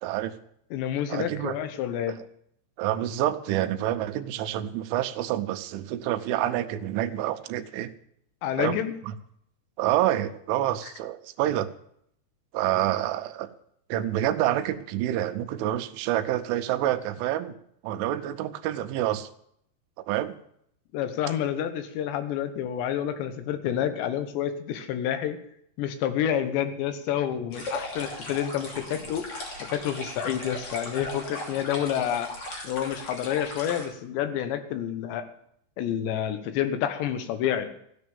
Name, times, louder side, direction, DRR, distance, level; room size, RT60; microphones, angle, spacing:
voice 1, 0.0-0.3 1.1-1.5 2.1-2.2 2.8-7.9 8.6-8.8 9.0-9.1 9.8-11.7 12.5-13.5 13.9-17.5 17.8-19.3 20.1-20.3, right 13 dB, 85° right, 9 dB, 3.3 m, -27 dB
voice 2, 0.7-2.1 8.4-8.9 20.9-25.4 25.8-29.2 29.7-32.3 32.6-35.2 35.8-37.7, left 10 dB, 75° left, 9 dB, 3.2 m, -29 dB
sound 1, 27.5-33.9, left 1 dB, 35° left, 3.2 m, -38 dB
14.5 x 9.8 x 7.1 m, 0.70 s
omnidirectional pair, 5.4 m